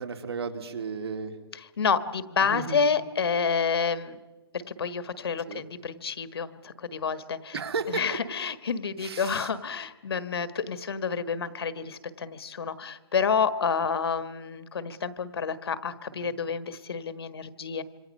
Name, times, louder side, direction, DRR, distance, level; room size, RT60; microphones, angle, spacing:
voice 1, 0.0-1.4 2.4-2.8 5.5-5.7 7.5-8.2 9.0-9.5 16.2-16.3, right 5 dB, 80° right, 6 dB, 2.6 m, -34 dB
voice 2, 1.8-4.2 4.7-7.5 7.9-17.8, left 6 dB, 75° left, 12 dB, 1.4 m, -29 dB
26.5 x 24.5 x 5.4 m, 1.1 s
hypercardioid pair, 175°, 13 cm